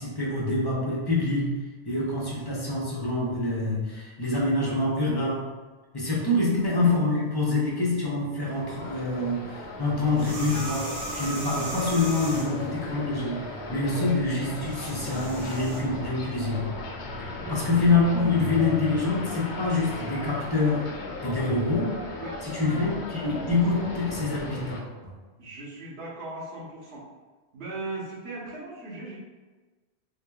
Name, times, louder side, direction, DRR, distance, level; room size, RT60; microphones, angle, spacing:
voice 1, 0.0-1.5 1.8-5.5 5.9-13.4 13.7-16.7 17.5-20.9 21.2-21.9 22.4-24.8, left 2 dB, 25° left, -5 dB, 0.7 m, -26 dB
voice 2, 6.3-6.7 14.0-14.1 17.3-17.6 22.2-22.4 25.4-27.0 27.5-29.2, right 2 dB, 70° right, -7 dB, 1.3 m, -38 dB
sound 1, 8.4-24.8, left 2 dB, 85° left, 0.9 m, -37 dB
sound 2, 10.1-12.7 14.5-15.8, equal, 50° right, 0.9 m, -36 dB
3.7 x 3.1 x 2.3 m, 1.3 s
omnidirectional pair, 1.1 m